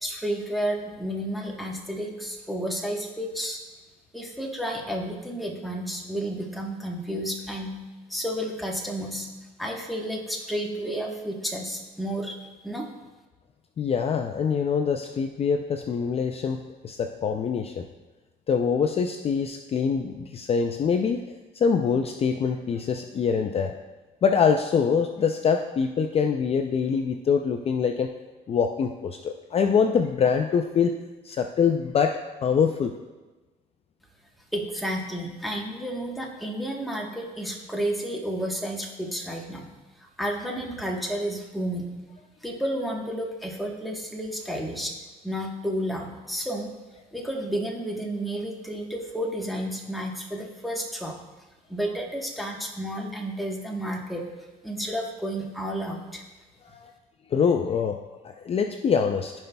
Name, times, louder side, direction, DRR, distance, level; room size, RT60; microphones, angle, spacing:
voice 1, 0.0-3.6 4.1-7.7 8.1-9.3 9.6-12.4 12.6-12.9 34.5-39.7 40.0-41.9 42.4-44.9 45.2-46.7 47.1-51.1 51.7-54.2 54.6-56.2, equal, ahead, -1 dB, 1.2 m, -31 dB
voice 2, 13.8-17.9 18.5-21.2 21.5-23.8 24.2-28.1 28.5-30.9 31.2-32.9 56.7-56.9 57.3-58.0 58.4-59.3, left 6 dB, 35° left, 5 dB, 0.4 m, -24 dB
15.0 x 5.4 x 2.3 m, 1.2 s
cardioid pair, 110°, 17 cm